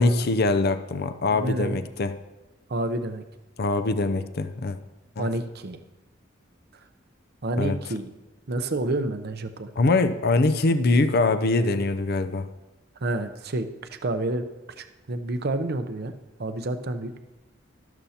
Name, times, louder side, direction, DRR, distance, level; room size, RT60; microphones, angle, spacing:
voice 1, 0.0-2.2 3.6-4.8 5.2-5.3 7.6-7.8 9.8-12.5, left 3 dB, 55° left, 10 dB, 0.6 m, -23 dB
voice 2, 1.3-1.8 2.7-3.2 5.2-5.8 7.4-8.1 8.5-9.7 13.0-13.7 14.0-14.4 14.8-16.1 16.4-17.1, right 2 dB, 55° right, 9 dB, 0.7 m, -29 dB
13.0 x 12.0 x 2.9 m, 1.1 s
head